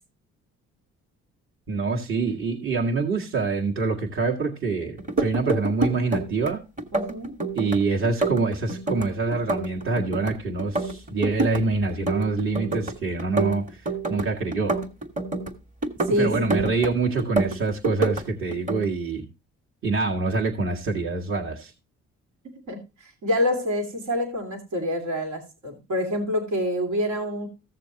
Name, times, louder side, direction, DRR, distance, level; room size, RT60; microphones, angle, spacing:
voice 1, 1.7-6.6 7.5-14.8 16.2-19.3 19.8-21.7, right 3 dB, 45° right, -2 dB, 1.9 m, -26 dB
sound 1, 5.0-6.5 6.8-7.8 8.0-10.3 10.6-11.6 11.9-12.9 13.2-15.5 15.8-16.9 17.2-18.2 18.5-18.8, right 3 dB, 25° right, 1.9 m, -26 dB
voice 2, 6.9-7.4 16.0-16.5 22.7-27.5, equal, 75° right, 2 dB, 2.7 m, -27 dB
15.5 x 6.8 x 2.9 m, 0.28 s
cardioid pair, 90°, 30 cm